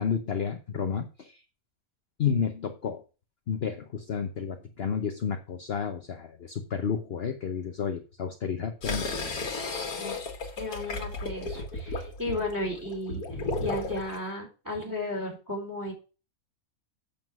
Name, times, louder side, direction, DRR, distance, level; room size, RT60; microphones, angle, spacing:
voice 1, 0.0-1.4 2.2-3.0 3.5-9.1, left 6 dB, 50° left, 6 dB, 1.0 m, -31 dB
sound 1, 8.8-14.2, left 3 dB, 85° left, 2.2 m, -34 dB
voice 2, 10.6-13.2 13.6-15.9, left 1 dB, 10° right, 1 dB, 4.0 m, -34 dB
7.7 x 7.2 x 6.1 m, 0.34 s
omnidirectional pair, 1.5 m